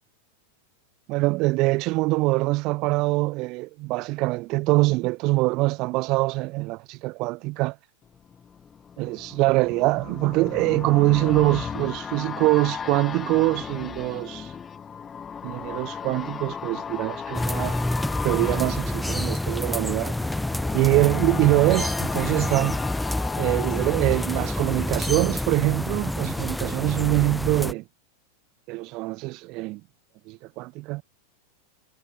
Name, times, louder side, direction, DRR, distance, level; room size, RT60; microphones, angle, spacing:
voice 1, 1.1-7.8 9.0-14.5 15.4-17.8 18.2-20.1 20.7-22.8 23.4-27.8 28.7-29.8 30.3-31.0, right 22 dB, 40° right, 2.3 m, -24 dB
sound 1, 8.2-26.0 26.3-26.4, left 7 dB, 20° left, 0.8 m, -35 dB
sound 2, 17.3-27.7, left 1 dB, 5° left, 2.4 m, -28 dB
figure-of-eight pair, 90°, 0 cm